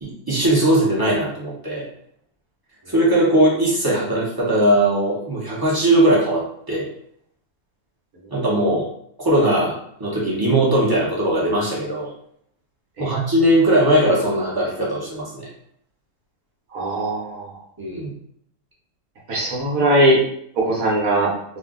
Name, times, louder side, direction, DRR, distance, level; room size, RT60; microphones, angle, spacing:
voice 1, 0.0-1.8 2.9-6.9 8.3-8.9 9.2-12.1 13.0-15.5 17.8-18.1, right 1 dB, 20° right, -6 dB, 0.6 m, -19 dB
voice 2, 16.7-17.6 19.3-20.2 20.6-21.3, right 1 dB, 65° right, -3 dB, 1.1 m, -20 dB
2.6 x 2.5 x 3.6 m, 0.68 s
omnidirectional pair, 1.6 m